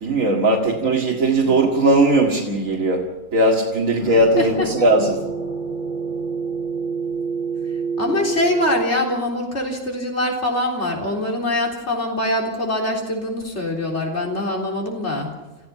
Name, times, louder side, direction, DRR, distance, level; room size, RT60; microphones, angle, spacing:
voice 1, 0.0-3.0 3.3-5.2, right 2 dB, 75° right, -2 dB, 2.5 m, -18 dB
voice 2, 1.0-1.6 4.4-4.7 8.0-15.3, left 1 dB, 55° left, 0 dB, 4.1 m, -24 dB
sound 1, 4.0-8.8, right 5 dB, 35° left, 4.5 m, -27 dB
28.5 x 15.5 x 5.9 m, 1.1 s
omnidirectional pair, 1.4 m